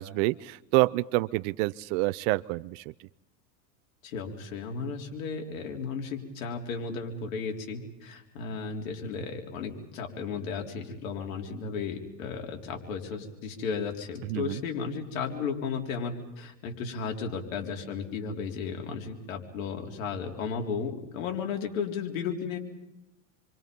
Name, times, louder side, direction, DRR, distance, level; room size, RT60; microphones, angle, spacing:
voice 1, 0.0-3.1 14.2-14.6, right 20 dB, 60° right, 15 dB, 0.7 m, -28 dB
voice 2, 4.0-22.6, left 5 dB, 75° left, 2 dB, 3.9 m, -34 dB
28.0 x 24.0 x 5.4 m, 0.95 s
supercardioid pair, 115°, 41 cm